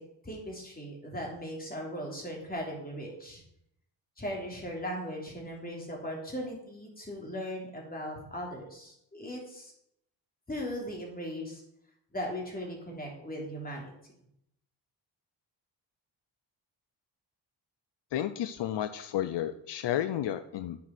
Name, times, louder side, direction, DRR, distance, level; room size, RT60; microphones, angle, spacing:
voice 1, 0.2-3.4 4.2-9.7 10.5-11.6 12.1-13.9, equal, 20° left, -1 dB, 3.5 m, -38 dB
voice 2, 18.1-20.8, left 11 dB, 75° left, 11 dB, 0.7 m, -32 dB
9.4 x 7.2 x 6.0 m, 0.76 s
cardioid pair, 115°, 42 cm